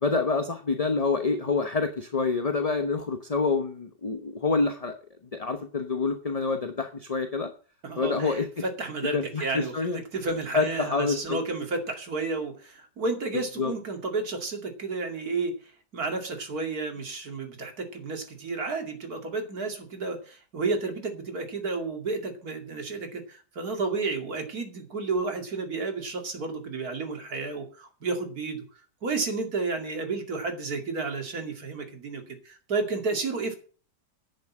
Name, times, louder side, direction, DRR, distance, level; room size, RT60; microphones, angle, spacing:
voice 1, 0.0-4.9 5.3-7.5 8.0-8.5 9.1-10.0 10.5-11.4 13.6-13.7, left 4 dB, 30° left, 6 dB, 0.8 m, -27 dB
voice 2, 7.8-15.5 15.9-28.6 29.0-33.5, right 3 dB, 60° right, 4 dB, 2.9 m, -31 dB
10.5 x 6.8 x 8.5 m, 0.40 s
omnidirectional pair, 1.8 m